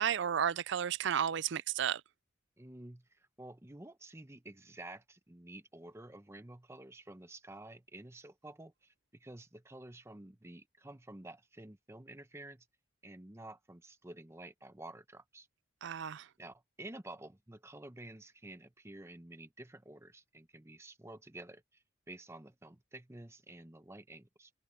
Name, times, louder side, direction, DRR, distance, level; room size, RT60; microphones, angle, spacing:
voice 1, 0.0-2.0 15.8-16.3, right 8 dB, 60° right, 0.4 m, -32 dB
voice 2, 2.6-12.7 13.0-15.5 16.4-24.5, right 1 dB, 15° right, 0.9 m, -51 dB
open air
head